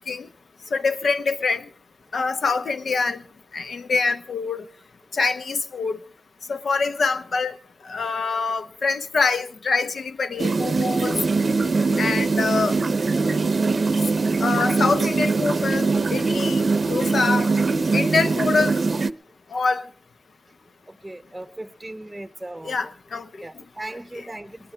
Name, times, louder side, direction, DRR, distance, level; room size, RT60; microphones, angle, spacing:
voice 1, 0.7-1.7 2.1-3.2 3.5-4.6 5.1-6.0 6.5-7.6 7.8-11.2 12.0-12.8 14.4-16.6 16.9-17.5 17.9-18.8 19.5-19.9 22.6-23.2, left 4 dB, 85° left, 1.0 m, -25 dB
sound 1, 10.4-19.1, right 4 dB, 60° right, 0.7 m, -22 dB
voice 2, 20.9-22.9 23.4-24.7, right 1 dB, 10° right, 0.7 m, -38 dB
21.0 x 19.5 x 3.4 m
wide cardioid pair, 85°, 0 cm